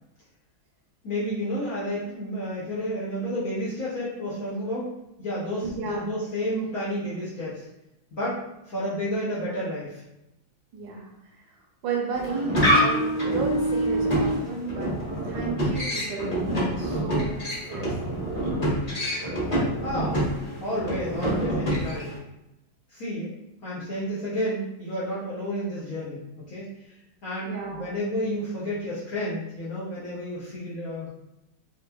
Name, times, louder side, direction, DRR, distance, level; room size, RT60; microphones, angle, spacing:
voice 1, 1.0-4.9 5.2-7.6 8.1-8.4 8.7-10.0 19.8-22.1 22.9-23.3 23.6-26.6 27.2-31.1, equal, 65° left, -8 dB, 0.9 m, -31 dB
voice 2, 5.6-6.0 10.7-14.9 15.2-17.3 17.7-18.7 27.4-27.9, right 4 dB, 75° right, 0 dB, 1.3 m, -34 dB
sound 1, 12.1-22.2, right 1 dB, 30° left, 0.7 m, -26 dB
3.3 x 3.1 x 2.2 m, 0.91 s
omnidirectional pair, 2.3 m